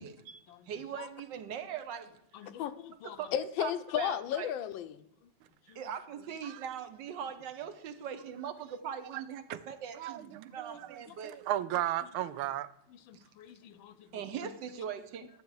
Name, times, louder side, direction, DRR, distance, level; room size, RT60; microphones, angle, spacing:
voice 1, 0.0-2.2 3.0-4.5 5.7-11.4 13.1-13.2 14.1-15.3, right 8 dB, 70° right, 1.3 m, -41 dB
voice 2, 2.3-4.9 5.7-5.8 13.1-14.5, left 10 dB, 75° left, 1.3 m, -36 dB
voice 3, 9.9-12.7, right 13 dB, 85° right, 1.5 m, -35 dB
10.5 x 7.1 x 4.7 m
omnidirectional pair, 2.3 m